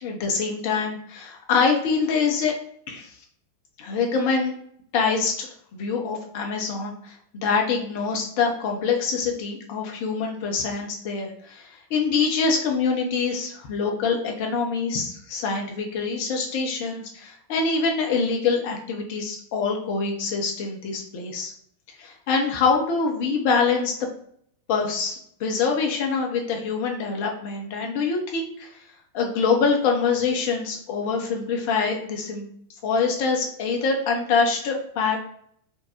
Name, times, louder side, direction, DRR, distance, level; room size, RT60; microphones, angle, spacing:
voice 1, 0.0-2.5 2.9-3.1 3.8-4.5 4.9-21.5 22.0-23.9 24.7-28.7 29.1-32.5 32.8-35.2, left 5 dB, 45° left, 1 dB, 1.0 m, -25 dB
3.6 x 2.5 x 4.3 m, 0.65 s
figure-of-eight pair, 90°, 0 cm